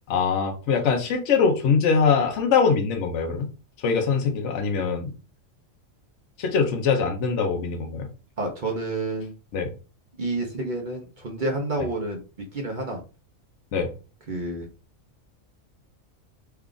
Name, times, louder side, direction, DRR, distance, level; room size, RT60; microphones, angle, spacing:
voice 1, 0.1-3.5 3.8-5.1 6.4-8.1 9.5-9.7 13.7-13.9, left 5 dB, 70° left, 3 dB, 1.0 m, -22 dB
voice 2, 8.4-9.3 10.2-12.2 12.5-13.0 14.3-14.7, right 2 dB, 45° right, 1 dB, 0.7 m, -29 dB
3.3 x 2.3 x 3.7 m, 0.33 s
omnidirectional pair, 1.4 m